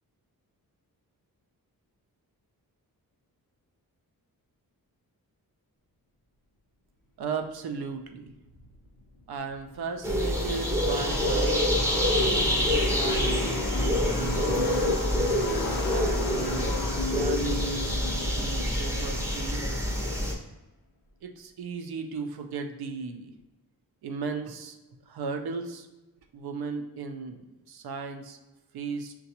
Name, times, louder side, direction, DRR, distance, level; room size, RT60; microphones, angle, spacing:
voice 1, 7.2-8.3 9.3-11.7 12.7-14.9 15.9-19.7 21.2-23.3 24.0-24.8 25.0-25.9 26.3-28.4 28.7-29.1, right 5 dB, 85° right, 5 dB, 0.5 m, -36 dB
Car passing by / Race car auto racing, 9.0-9.1 9.2-19.8, left 3 dB, 65° left, 0.6 m, -34 dB
sound 1, 10.0-20.3, equal, 10° right, 0.6 m, -26 dB
6.6 x 2.2 x 2.8 m, 1.1 s
wide cardioid pair, 165°, 37 cm